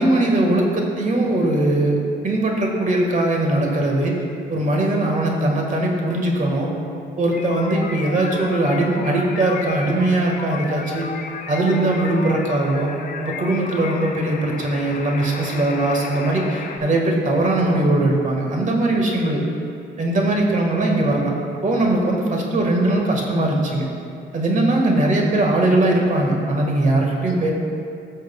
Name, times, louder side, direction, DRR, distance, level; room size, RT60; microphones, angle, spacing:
voice 1, 0.0-4.2 4.5-6.7 7.2-11.1 11.5-12.9 13.2-19.4 20.0-21.3 21.6-23.9 24.3-27.5, right 2 dB, 40° right, 0 dB, 1.7 m, -20 dB
sound 1, 7.3-16.8, left 5 dB, 45° left, 0.8 m, -33 dB
17.0 x 6.5 x 2.3 m, 2.5 s
cardioid pair, 90°, 20 cm